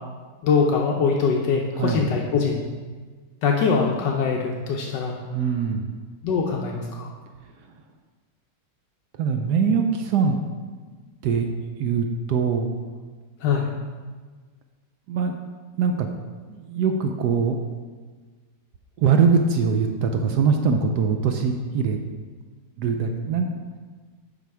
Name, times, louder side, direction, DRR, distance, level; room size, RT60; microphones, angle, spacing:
voice 1, 0.4-2.6 3.4-5.2 6.2-7.1 13.4-13.7, left 5 dB, 75° left, 0 dB, 1.3 m, -22 dB
voice 2, 1.8-2.1 5.3-6.0 7.4-7.8 9.1-10.4 11.2-11.5 11.8-12.7 15.1-15.3 15.8-16.1 16.5-17.6 19.0-22.0 22.8-23.8, right 5 dB, 75° right, 5 dB, 1.1 m, -22 dB
7.5 x 5.6 x 4.7 m, 1.4 s
omnidirectional pair, 2.0 m